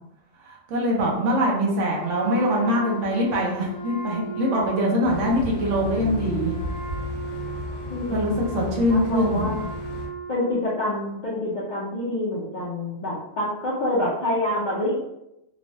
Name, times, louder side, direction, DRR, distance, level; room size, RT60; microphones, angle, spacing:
voice 1, 0.4-6.5 8.1-9.5, equal, 65° right, -3 dB, 1.0 m, -23 dB
Wind instrument woodwind instrument, 2.0-10.8, right 1 dB, 75° left, 0.9 m, -36 dB
sound 1, 5.0-10.1, left 2 dB, 30° left, 0.9 m, -34 dB
voice 2, 7.9-9.6 10.3-15.0, left 1 dB, 60° left, -7 dB, 0.5 m, -27 dB
3.0 x 2.0 x 2.6 m, 0.87 s
omnidirectional pair, 1.4 m